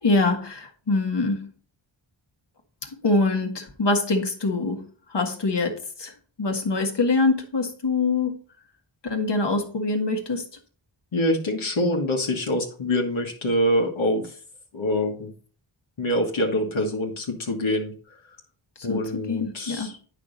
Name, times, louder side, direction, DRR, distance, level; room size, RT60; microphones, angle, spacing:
voice 1, 0.0-1.5 2.8-4.8 5.1-6.1 6.4-8.3 9.0-10.4 18.9-19.9, left 3 dB, 60° left, 4 dB, 1.6 m, -24 dB
voice 2, 11.1-14.4 14.7-15.3 16.0-17.9 18.8-20.0, left 1 dB, 75° left, 0 dB, 1.6 m, -25 dB
8.9 x 5.8 x 3.9 m, 0.42 s
wide cardioid pair, 80°, 48 cm